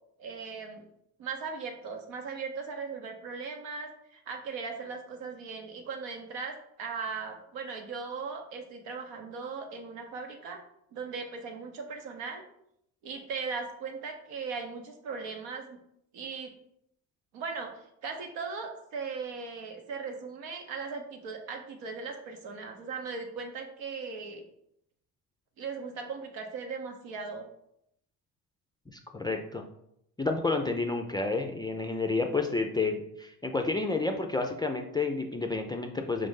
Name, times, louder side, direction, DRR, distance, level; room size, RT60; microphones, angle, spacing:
voice 1, 0.2-0.8 1.2-10.6 10.9-12.4 13.0-15.8 16.1-16.5 17.3-24.4 25.6-27.5, right 5 dB, 75° right, 3 dB, 1.0 m, -38 dB
voice 2, 28.9-29.6 30.2-36.3, left 3 dB, 10° left, 3 dB, 0.3 m, -30 dB
5.2 x 2.5 x 3.7 m, 0.75 s
supercardioid pair, 70°, 43 cm